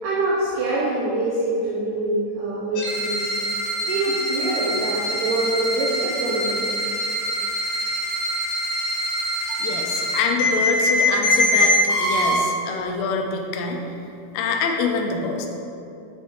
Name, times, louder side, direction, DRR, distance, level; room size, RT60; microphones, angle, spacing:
voice 1, 0.0-3.3 3.8-6.6 9.4-9.5, right 2 dB, 90° right, -7 dB, 2.3 m, -25 dB
sound 1, 2.8-12.4, left 1 dB, 65° left, 3.4 m, -24 dB
voice 2, 9.6-13.8 14.3-15.5, left 4 dB, 85° left, 2 dB, 3.1 m, -25 dB
8.0 x 3.5 x 4.2 m, 2.7 s
omnidirectional pair, 5.8 m